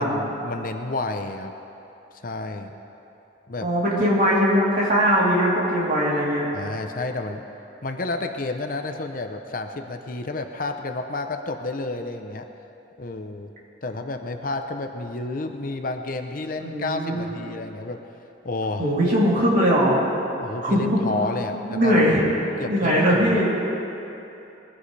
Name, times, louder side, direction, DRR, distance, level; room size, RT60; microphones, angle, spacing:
voice 1, 0.0-1.5 2.2-2.7 3.5-3.7 6.5-7.4 7.8-12.5 13.0-13.5 13.8-18.0 18.4-18.9 20.4-22.1 22.6-23.4, left 2 dB, 45° left, 5 dB, 0.6 m, -30 dB
voice 2, 3.6-6.5 16.6-17.3 18.8-20.0 20.6-21.0 21.6-22.2 22.6-23.5, equal, 45° right, -6 dB, 3.3 m, -20 dB
21.0 x 15.5 x 3.3 m, 2.9 s
head